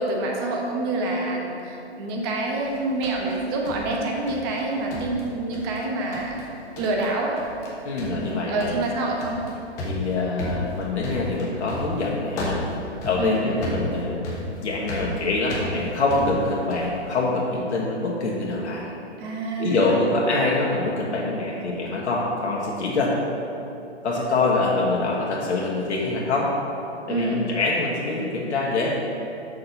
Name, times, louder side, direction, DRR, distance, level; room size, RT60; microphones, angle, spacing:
voice 1, 0.0-6.5 6.8-7.3 8.0-9.4 13.2-13.4 19.2-20.0 27.1-27.5, right 2 dB, 20° right, 0 dB, 0.8 m, -27 dB
sound 1, 2.6-4.6 4.9-5.8 6.1-6.5 6.8-7.1 7.4-7.7 8.0-17.0, left 1 dB, 10° left, 0.5 m, -34 dB
voice 2, 7.8-8.7 9.8-12.7 13.0-18.9 19.6-23.2 24.0-26.5 27.1-28.9, left 3 dB, 75° left, -4 dB, 1.3 m, -25 dB
6.5 x 3.9 x 5.8 m, 2.7 s
hypercardioid pair, 140°, 34 cm